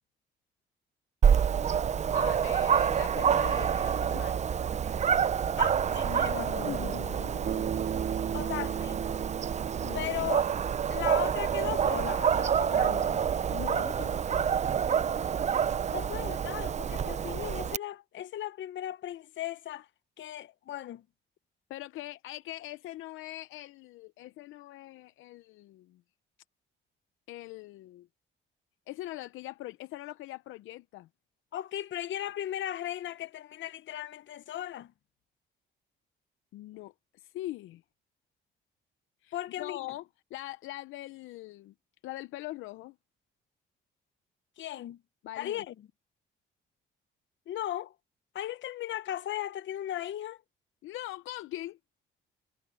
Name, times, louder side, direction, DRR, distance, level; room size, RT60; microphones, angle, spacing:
Dog, 1.2-17.8, right 8 dB, 35° right, 0.5 m, -28 dB
voice 1, 2.1-4.4 6.7-7.6 9.8-10.1 13.5-14.6 21.7-26.0 27.3-28.1 28.9-31.1 36.5-37.8 39.2-40.0 40.3-41.7 42.0-42.9 45.2-45.6 50.8-51.8, left 16 dB, 90° left, 0.6 m, -42 dB
voice 2, 5.6-7.0 8.3-9.0 9.9-10.5 10.9-13.2 15.9-19.9 20.2-21.0 31.5-34.9 39.3-39.9 44.6-45.0 45.4-45.7 47.5-47.9 48.3-50.4, left 12 dB, 70° left, 1.0 m, -37 dB
Bass guitar, 7.5-11.5, right 8 dB, 60° right, 2.6 m, -37 dB
cardioid pair, 90°, 20 cm